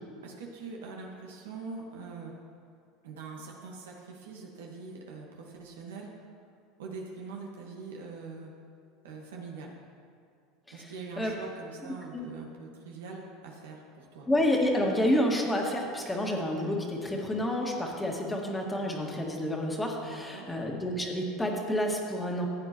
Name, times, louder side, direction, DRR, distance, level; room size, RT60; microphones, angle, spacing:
voice 1, 0.2-2.3 3.0-6.1 6.8-8.5 9.0-9.8 10.7-14.3 20.0-20.5, right 4 dB, 85° right, -1 dB, 1.5 m, -43 dB
voice 2, 14.3-22.5, left 1 dB, 10° left, -1 dB, 1.8 m, -29 dB
14.5 x 8.4 x 3.0 m, 2.3 s
hypercardioid pair, 95°, 0 cm